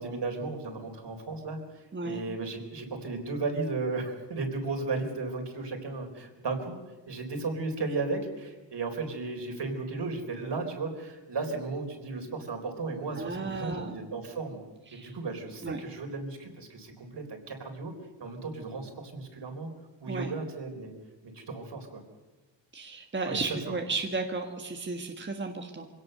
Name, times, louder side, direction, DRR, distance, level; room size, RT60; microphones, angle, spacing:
voice 1, 0.0-6.8 7.1-14.6 14.9-17.9 18.2-19.7 20.0-20.9 21.2-22.0 23.3-23.7, right 3 dB, 65° right, 3 dB, 4.1 m, -35 dB
voice 2, 1.9-2.2 13.1-14.0 14.9-15.1 15.6-15.8 20.1-20.3 22.7-25.9, right 3 dB, 25° right, 3 dB, 1.5 m, -34 dB
25.0 x 17.5 x 6.7 m, 1.2 s
wide cardioid pair, 145°, 45 cm